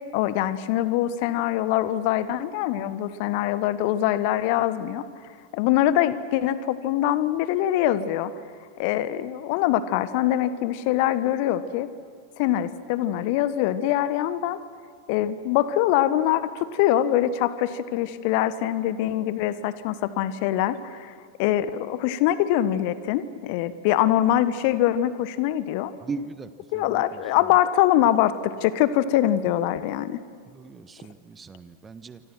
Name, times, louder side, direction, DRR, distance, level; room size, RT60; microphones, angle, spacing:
voice 1, 0.1-5.0 5.5-8.3 8.8-11.9 12.4-14.6 15.1-21.1 21.4-25.9 26.7-30.2, left 12 dB, 45° left, 14 dB, 1.4 m, -23 dB
voice 2, 26.0-27.0 30.5-32.2, right 4 dB, 15° right, 14 dB, 1.3 m, -38 dB
28.0 x 25.5 x 6.1 m, 2.2 s
figure-of-eight pair, 90°, 0 cm